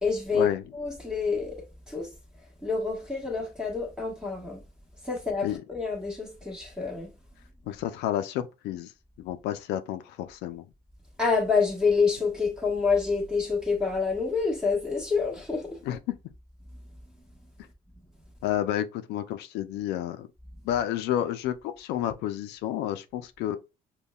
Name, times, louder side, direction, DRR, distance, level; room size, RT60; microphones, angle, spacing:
voice 1, 0.0-2.1 2.6-4.6 5.0-7.1 11.2-15.8, left 4 dB, 5° right, 1.3 m, -27 dB
voice 2, 7.6-8.9 9.2-10.6 15.8-16.2 18.4-20.3 20.6-23.6, left 11 dB, 85° left, 0.4 m, -30 dB
5.3 x 2.2 x 2.2 m
cardioid pair, 110°, 17 cm